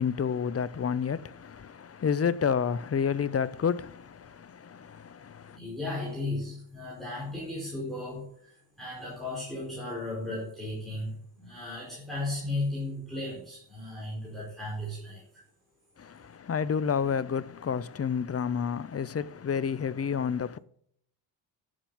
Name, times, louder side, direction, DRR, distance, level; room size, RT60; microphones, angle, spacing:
voice 1, 0.0-5.6 16.0-20.6, left 7 dB, 35° left, 0.7 m, -30 dB
voice 2, 5.5-15.4, left 2 dB, ahead, 4.8 m, -35 dB
10.5 x 7.4 x 7.2 m
cardioid pair, 105°, 43 cm